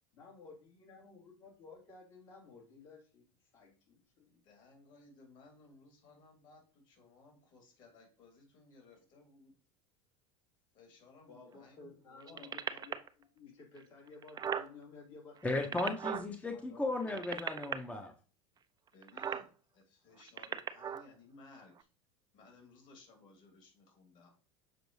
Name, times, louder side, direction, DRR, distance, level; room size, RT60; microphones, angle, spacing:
voice 1, 0.1-4.4 11.3-15.9 16.5-17.3, left 4 dB, 75° left, -4 dB, 3.3 m, -55 dB
voice 2, 4.3-9.5 10.7-12.5 18.9-21.7 22.3-24.3, left 3 dB, 55° left, 2 dB, 3.0 m, -59 dB
sound 1, 12.2-13.1 13.8-13.9 14.1-14.7 15.4-16.3 17.0-17.7 19.0-19.5 20.2-21.1 21.8-21.9, right 8 dB, 25° right, 0.4 m, -37 dB
voice 3, 15.4-18.1, left 2 dB, 10° left, 4 dB, 0.7 m, -35 dB
6.7 x 4.5 x 3.1 m, 0.38 s
hypercardioid pair, 90°, 16 cm